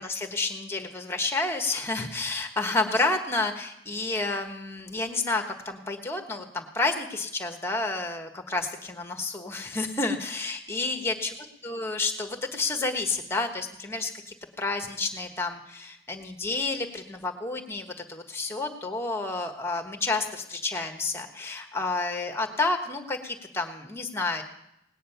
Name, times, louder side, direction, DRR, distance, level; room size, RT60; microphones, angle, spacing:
voice 1, 0.0-11.3 11.6-24.4, left 3 dB, 15° left, 5 dB, 1.3 m, -30 dB
18.5 x 9.9 x 5.7 m, 0.81 s
head